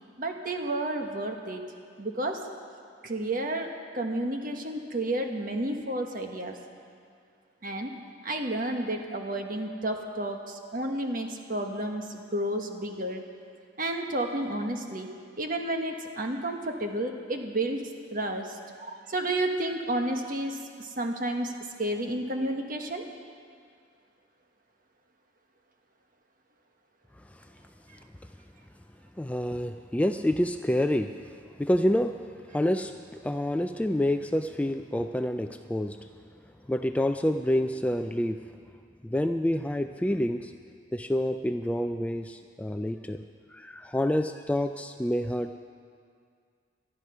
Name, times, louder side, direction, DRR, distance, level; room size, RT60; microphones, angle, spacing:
voice 1, 0.2-1.6 2.0-2.4 3.0-6.5 7.6-7.9 8.2-13.2 13.8-15.1 15.4-17.8 18.1-18.5 18.8-23.0, right 1 dB, 45° right, 3 dB, 1.3 m, -31 dB
voice 2, 29.2-31.1 31.6-32.2 32.5-32.9 33.2-36.0 36.7-38.4 39.0-40.5 40.9-43.2 43.5-45.5, left 1 dB, 5° left, 7 dB, 0.3 m, -27 dB
19.0 x 12.5 x 5.6 m, 2.2 s
head